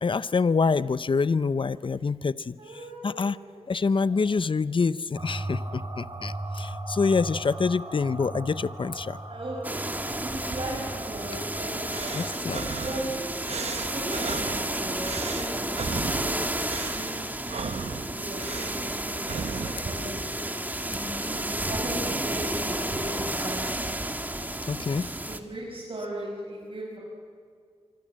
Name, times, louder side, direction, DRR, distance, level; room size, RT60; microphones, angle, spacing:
voice 1, 0.0-2.5 3.0-3.4 3.7-9.2 12.1-12.6 24.7-25.1, left 4 dB, 50° left, 16 dB, 0.7 m, -26 dB
voice 2, 2.6-4.2 9.3-16.7 17.0-20.2 20.9-23.8 25.3-27.0, right 1 dB, 60° right, -5 dB, 7.3 m, -37 dB
sound 1, 5.2-12.3, right 1 dB, 40° right, 3.0 m, -37 dB
sound 2, 9.6-25.4, right 1 dB, 15° right, 1.8 m, -32 dB
sound 3, 11.9-19.9, right 5 dB, 80° right, 1.2 m, -37 dB
25.0 x 25.0 x 7.6 m, 2.1 s
wide cardioid pair, 65°, 11 cm